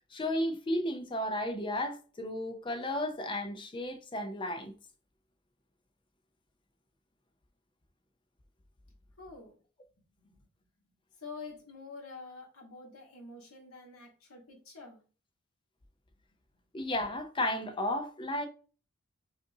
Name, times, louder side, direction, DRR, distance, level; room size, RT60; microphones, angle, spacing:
voice 1, 0.1-4.7 16.7-18.5, left 1 dB, 25° left, 0.5 m, -33 dB
voice 2, 9.2-9.6 10.2-10.4 10.8-10.9 11.2-15.0, left 4 dB, 85° left, 1.5 m, -47 dB
5.2 x 2.6 x 2.6 m
head